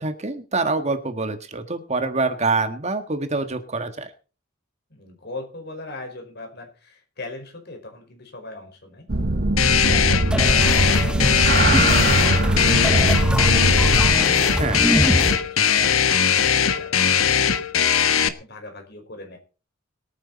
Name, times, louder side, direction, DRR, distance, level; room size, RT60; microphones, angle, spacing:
voice 1, 0.0-4.1 14.6-14.8, right 3 dB, 35° right, 8 dB, 1.6 m, -25 dB
voice 2, 4.9-9.1 9.6-13.5 13.8-18.0 18.4-19.4, left 2 dB, 50° left, 4 dB, 5.2 m, -40 dB
sound 1, 9.1-14.2, right 2 dB, 50° right, 0.9 m, -21 dB
sound 2, 9.6-18.3, left 8 dB, 85° left, 1.4 m, -20 dB
sound 3, 10.3-15.4, equal, 5° right, 1.2 m, -25 dB
23.0 x 9.4 x 4.2 m, 0.35 s
head